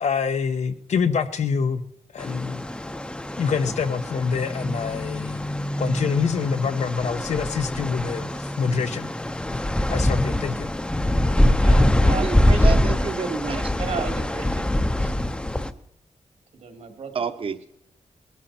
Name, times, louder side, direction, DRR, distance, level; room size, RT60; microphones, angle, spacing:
voice 1, 0.0-1.8 2.1-2.7 3.4-5.4 5.8-9.1 9.9-10.7, left 5 dB, 90° left, 1.0 m, -26 dB
sound 1, 2.2-15.7, left 1 dB, 10° left, 0.6 m, -23 dB
voice 2, 11.5-12.8 13.8-15.1 16.5-17.3, right 5 dB, 75° right, 2.6 m, -34 dB
voice 3, 12.2-13.6 17.1-17.7, right 5 dB, 50° right, 1.0 m, -29 dB
20.5 x 12.5 x 4.3 m
wide cardioid pair, 165°, 11 cm